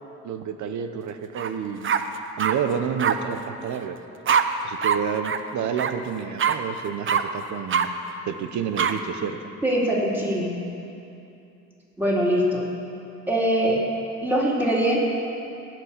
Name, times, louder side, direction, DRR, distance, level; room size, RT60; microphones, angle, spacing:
voice 1, 0.0-1.9 2.4-4.0 4.6-7.9 8.3-9.4, right 7 dB, 70° right, 8 dB, 0.8 m, -29 dB
sound 1, 1.4-1.5 1.8-2.6 3.0-3.1 4.3-4.4 4.8-5.0 5.2-5.4 5.8-5.9 6.4-6.6 7.1-7.2 7.7-7.9 8.8-8.9, right 7 dB, 40° right, 0.7 m, -22 dB
voice 2, 9.6-10.5 12.0-12.6 13.3-13.8 14.2-15.1, right 1 dB, 5° right, -5 dB, 3.5 m, -22 dB
18.0 x 6.1 x 7.3 m, 2.7 s
cardioid pair, 90°, 30 cm